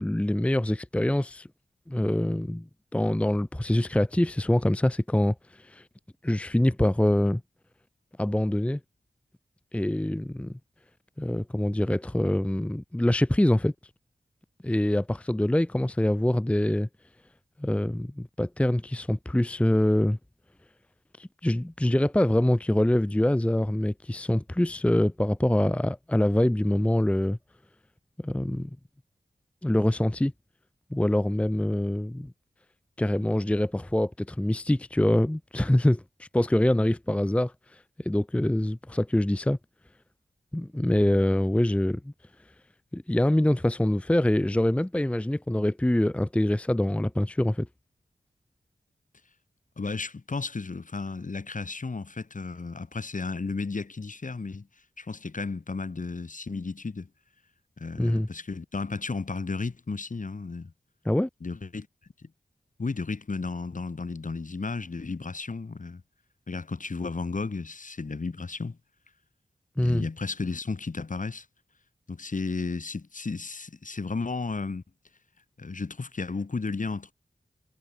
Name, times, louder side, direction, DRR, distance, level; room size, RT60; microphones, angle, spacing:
voice 1, 0.0-1.5 1.9-2.7 2.9-5.8 6.2-7.4 8.2-8.8 9.7-10.5 11.2-13.7 14.6-16.9 17.6-20.2 21.2-27.4 28.2-28.7 29.6-30.3 30.9-32.3 33.0-37.5 38.0-39.6 40.5-42.1 42.9-47.7 58.0-58.3 61.1-61.3 69.8-70.0, left 1 dB, 10° left, 0.6 m, -25 dB
voice 2, 49.8-54.7 55.0-57.1 57.8-60.7 61.4-61.9 62.2-62.3 62.8-66.0 66.5-68.8 69.8-71.5 72.1-74.8 75.6-77.1, left 4 dB, 55° left, 2.1 m, -33 dB
cardioid pair, 45°, 16 cm